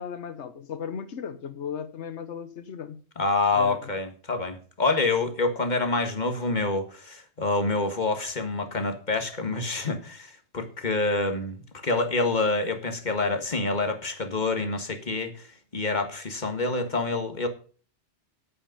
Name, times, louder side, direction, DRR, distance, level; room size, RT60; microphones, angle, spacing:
voice 1, 0.0-3.0 3.5-3.9, left 7 dB, 90° left, 1.2 m, -36 dB
voice 2, 3.2-17.5, left 3 dB, 40° left, 1.7 m, -27 dB
8.8 x 8.6 x 5.2 m
omnidirectional pair, 1.1 m